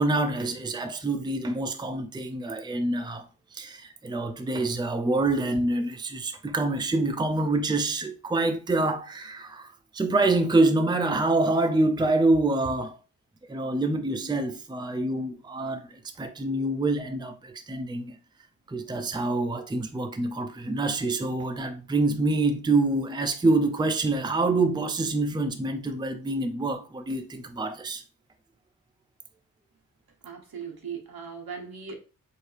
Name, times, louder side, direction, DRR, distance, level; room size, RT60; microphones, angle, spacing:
voice 1, 0.0-3.3 3.5-12.9 13.5-18.2 18.7-28.0, right 2 dB, 10° right, 0.5 m, -26 dB
voice 2, 30.2-32.0, right 6 dB, 80° right, 1.1 m, -38 dB
4.7 x 2.7 x 3.3 m
wide cardioid pair, 90°, 36 cm